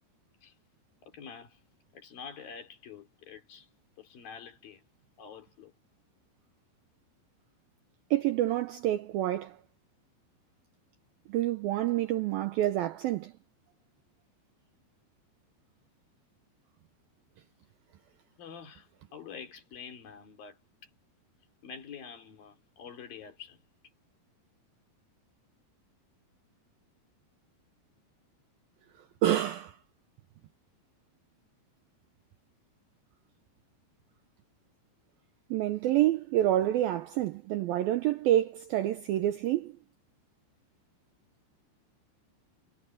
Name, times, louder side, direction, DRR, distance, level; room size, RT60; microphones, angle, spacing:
voice 1, 1.0-1.6 1.9-3.7 4.0-4.8 5.2-5.7 18.4-20.9 21.6-23.6 36.6-36.7, left 7 dB, 55° left, 4.6 m, -47 dB
voice 2, 8.1-9.6 11.3-13.3 29.2-29.8 35.5-39.8, right 13 dB, 90° right, 2.1 m, -28 dB
omnidirectional pair, 5.3 m